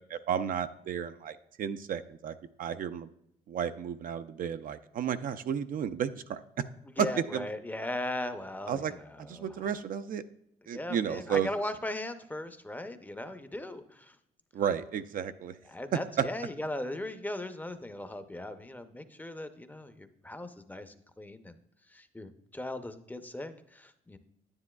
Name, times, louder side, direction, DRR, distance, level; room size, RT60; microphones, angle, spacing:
voice 1, 0.1-3.1 3.5-6.4 7.0-7.1 7.3-7.5 8.7-8.9 9.3-10.2 10.7-11.5 14.5-15.6 16.2-16.3, right 8 dB, 60° right, 10 dB, 0.4 m, -32 dB
voice 2, 7.0-9.7 10.7-14.2 15.7-21.6 21.9-24.2, left 1 dB, 10° left, 9 dB, 0.6 m, -38 dB
9.7 x 9.4 x 2.3 m, 0.75 s
cardioid pair, 85°, 16 cm